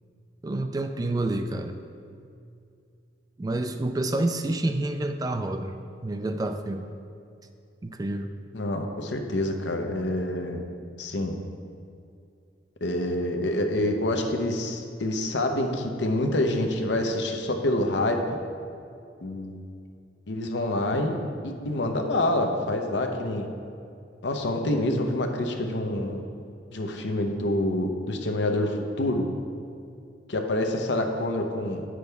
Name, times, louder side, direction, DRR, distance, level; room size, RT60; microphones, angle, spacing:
voice 1, 0.4-1.8 3.4-5.8 6.0-6.9 7.8-8.3, right 2 dB, 20° right, 7 dB, 0.3 m, -28 dB
voice 2, 8.5-10.6 11.0-11.4 12.8-18.4 19.2-19.5 20.3-23.5 24.2-26.2 26.7-29.3 30.3-31.8, left 1 dB, 75° left, 4 dB, 0.7 m, -27 dB
9.4 x 6.2 x 3.4 m, 2.5 s
head